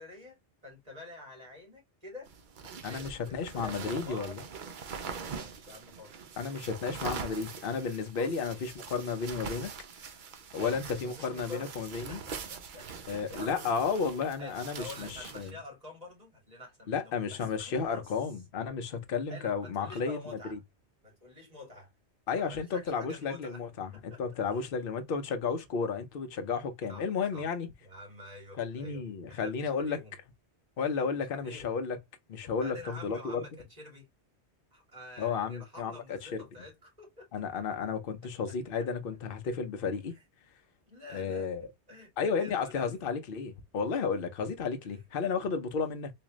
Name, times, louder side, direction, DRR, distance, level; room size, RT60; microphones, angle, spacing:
voice 1, 0.0-2.3 2.8-4.4 5.0-6.2 8.2-8.7 10.5-11.7 12.3-14.0 14.4-18.1 19.3-20.6 21.0-21.9 22.3-23.6 24.1-24.2 24.5-24.6 26.9-27.1 27.3-27.5 27.8-29.0 29.3-30.1 30.8-31.1 31.4-31.8 32.6-34.1 34.7-37.3 38.5-38.9 40.1-40.2 40.9-42.9 44.8-45.0, left 2 dB, 35° right, 2.2 m, -48 dB
sound 1, 2.3-15.5, right 6 dB, 55° right, 0.7 m, -43 dB
voice 2, 2.8-4.4 6.4-9.7 10.5-12.2 13.1-15.5 16.9-20.2 20.5-20.6 22.3-27.7 28.6-30.0 30.8-32.0 32.3-33.4 35.2-36.2 37.3-40.1 41.1-41.6 42.2-46.1, left 5 dB, 55° left, 0.9 m, -33 dB
3.6 x 2.5 x 3.0 m
omnidirectional pair, 1.2 m